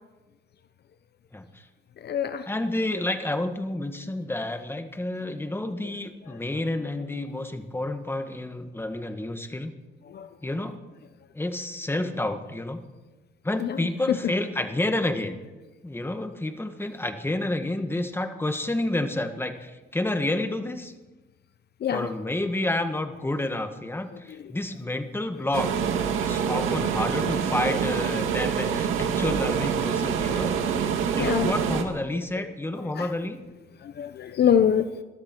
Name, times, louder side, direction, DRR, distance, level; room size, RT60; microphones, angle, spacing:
voice 1, 1.3-1.6 2.5-9.7 10.4-10.8 11.3-12.8 13.4-15.4 15.8-20.9 21.9-25.8 26.2-30.6 31.2-33.4, left 1 dB, 10° left, 7 dB, 1.8 m, -29 dB
voice 2, 2.0-2.5 10.1-10.3 13.6-14.2 21.8-22.1 26.2-26.4 31.2-31.5 33.0-33.1 33.8-34.9, left 9 dB, 55° left, 11 dB, 0.8 m, -25 dB
sound 1, 25.5-31.8, right 7 dB, 85° right, 2.1 m, -26 dB
22.0 x 13.5 x 4.6 m, 1.1 s
cardioid pair, 90°, 20 cm